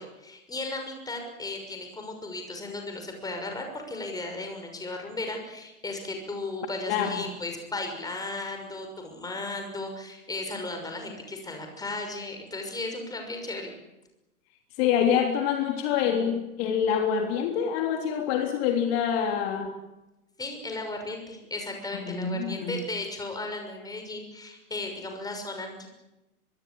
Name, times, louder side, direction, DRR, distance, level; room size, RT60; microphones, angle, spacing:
voice 1, 0.0-13.7 20.4-25.9, left 2 dB, 10° left, 4 dB, 6.2 m, -35 dB
voice 2, 6.9-7.2 14.8-19.7 22.0-22.8, left 8 dB, 40° left, 3 dB, 3.5 m, -26 dB
25.0 x 22.0 x 8.6 m, 0.97 s
hypercardioid pair, 120°, 45 cm